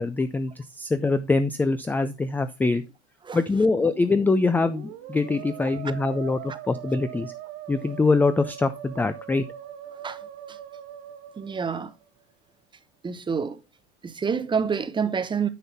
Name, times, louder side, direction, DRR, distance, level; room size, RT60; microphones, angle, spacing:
voice 1, 0.0-2.8 3.3-7.3 7.7-9.4, left 3 dB, 5° left, 0.4 m, -24 dB
Musical instrument, 3.5-12.2, right 11 dB, 55° right, 2.1 m, -41 dB
voice 2, 11.4-11.9 13.0-13.6 14.0-15.5, right 6 dB, 15° right, 0.8 m, -28 dB
9.6 x 5.4 x 4.1 m
supercardioid pair, 115°, 34 cm